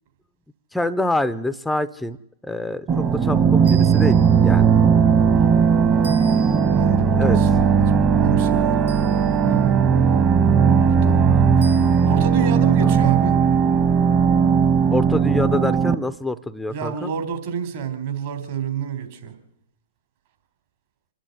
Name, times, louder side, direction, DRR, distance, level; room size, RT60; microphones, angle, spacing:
voice 1, 0.7-2.2 2.4-4.7 7.1-7.4 12.8-12.9 14.9-17.1, left 1 dB, 5° left, 0.7 m, -26 dB
sound 1, 2.9-15.9, right 6 dB, 30° right, 1.5 m, -17 dB
sound 2, 3.6-4.5 6.0-6.9 8.9-9.6 11.6-12.3, right 5 dB, 80° right, 7.9 m, -41 dB
voice 2, 5.3-5.9 6.7-7.8 8.1-9.7 10.8-13.4 16.7-19.3, right 7 dB, 55° right, 4.0 m, -29 dB
27.0 x 10.0 x 9.5 m
hypercardioid pair, 115°, 0 cm